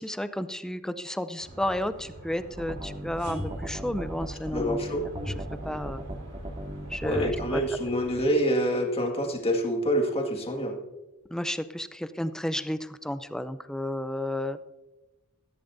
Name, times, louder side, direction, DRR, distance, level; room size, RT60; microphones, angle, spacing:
voice 1, 0.0-4.8 5.6-6.0 6.9-7.6 11.3-14.6, left 1 dB, 5° left, 11 dB, 0.5 m, -32 dB
sound 1, 1.4-8.3, right 1 dB, 80° right, 4.2 m, -46 dB
sound 2, 2.6-7.6, right 1 dB, 25° right, 1.8 m, -36 dB
voice 2, 4.5-5.0 7.0-10.8, equal, 25° left, 2 dB, 1.8 m, -26 dB
16.5 x 14.0 x 2.7 m, 1.0 s
head